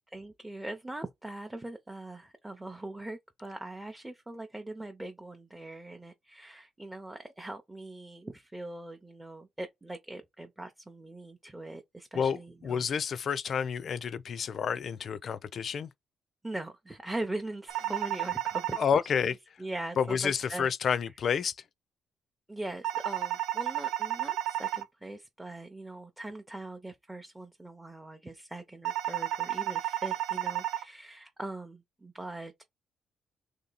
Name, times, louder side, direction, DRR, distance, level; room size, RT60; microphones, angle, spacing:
voice 1, 0.1-12.9 16.4-18.8 19.0-19.1 19.6-21.0 22.5-32.6, right 2 dB, 10° right, 0.6 m, -41 dB
voice 2, 12.1-15.9 18.8-19.4 20.0-21.6, left 7 dB, 55° left, 0.4 m, -29 dB
sound 1, 17.7-18.8 22.8-24.8 28.8-30.8, right 13 dB, 85° right, 0.4 m, -32 dB
3.1 x 2.8 x 3.9 m
cardioid pair, 90°, 0 cm